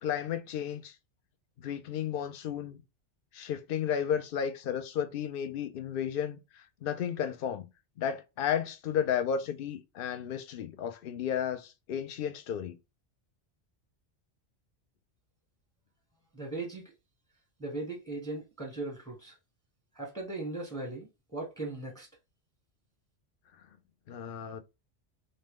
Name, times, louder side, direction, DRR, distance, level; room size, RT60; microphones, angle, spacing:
voice 1, 0.0-0.9 1.6-2.8 3.3-7.7 8.0-12.8 24.1-24.6, left 8 dB, 60° left, 0.7 m, -33 dB
voice 2, 16.3-16.9 17.6-19.4 19.9-22.1, right 2 dB, 5° left, 1.0 m, -38 dB
3.7 x 2.2 x 3.6 m
omnidirectional pair, 1.2 m